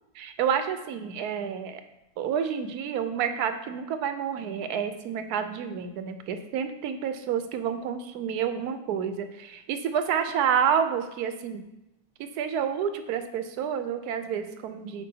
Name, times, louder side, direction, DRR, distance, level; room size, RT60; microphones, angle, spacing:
voice 1, 0.2-1.8 2.2-11.6 12.2-15.0, right 8 dB, 90° right, 9 dB, 1.1 m, -29 dB
8.2 x 4.7 x 2.7 m, 0.91 s
omnidirectional pair, 1.6 m